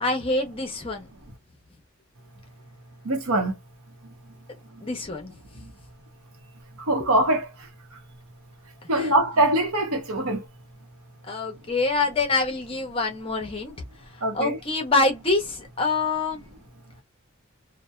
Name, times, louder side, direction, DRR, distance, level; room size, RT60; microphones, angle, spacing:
voice 1, 0.0-1.1 4.8-5.3 8.9-9.1 11.3-13.7 14.3-16.4, left 3 dB, 25° left, 0.7 m, -25 dB
voice 2, 3.0-3.6 4.7-4.8 5.6-5.7 6.8-8.0 8.9-10.4 14.2-14.6, right 1 dB, 80° right, 0.8 m, -24 dB
2.7 x 2.1 x 2.2 m
head